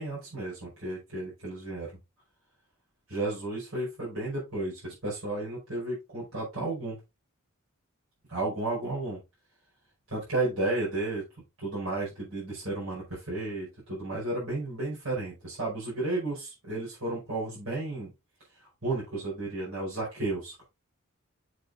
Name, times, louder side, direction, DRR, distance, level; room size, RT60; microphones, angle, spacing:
voice 1, 0.0-1.9 3.1-7.0 8.3-9.2 10.1-11.2 11.6-18.1 18.6-20.6, right 2 dB, 70° right, -6 dB, 5.3 m, -33 dB
8.1 x 6.9 x 2.6 m, 0.25 s
head